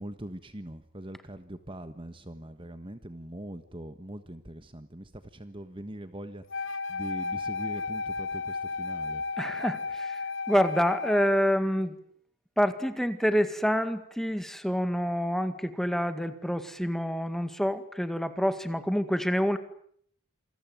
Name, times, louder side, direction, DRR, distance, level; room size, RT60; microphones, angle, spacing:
voice 1, 0.0-6.4 6.9-9.2, right 1 dB, 25° right, 10 dB, 1.4 m, -42 dB
Wind instrument woodwind instrument, 6.5-11.4, left 4 dB, 60° left, 2.5 m, -33 dB
voice 2, 9.4-12.0 12.6-19.6, equal, ahead, 10 dB, 2.0 m, -27 dB
28.0 x 22.5 x 9.4 m, 0.66 s
head